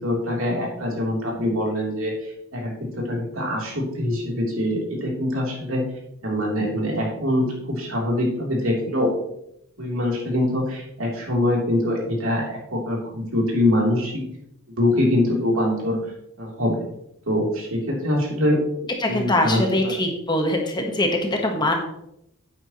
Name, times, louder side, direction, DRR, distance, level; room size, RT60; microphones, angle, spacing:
voice 1, 0.0-5.8 6.2-9.1 9.8-14.2 14.8-16.0 16.4-16.8 17.3-18.6 19.1-19.9 21.6-21.7, left 1 dB, 75° right, -2 dB, 3.4 m, -24 dB
voice 2, 19.0-21.7, left 1 dB, 20° left, 2 dB, 1.3 m, -22 dB
10.5 x 8.9 x 3.1 m, 0.78 s
head